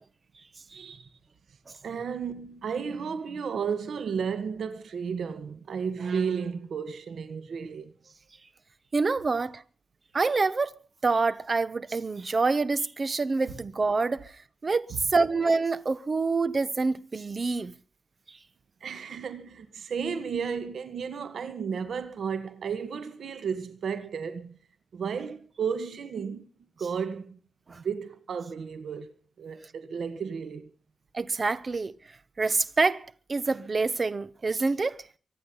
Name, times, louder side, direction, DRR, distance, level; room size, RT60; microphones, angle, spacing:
voice 1, 0.7-1.1 1.8-7.9 14.9-15.0 18.8-24.6 24.9-26.5 26.8-27.4 27.7-30.7, right 6 dB, 80° right, 1.8 m, -33 dB
voice 2, 8.9-9.6 10.1-10.7 11.0-17.7 18.3-18.4 27.7-27.8 31.1-32.0 32.4-35.1, right 3 dB, 35° right, 1.1 m, -27 dB
24.5 x 10.0 x 5.6 m
wide cardioid pair, 150°, 0 cm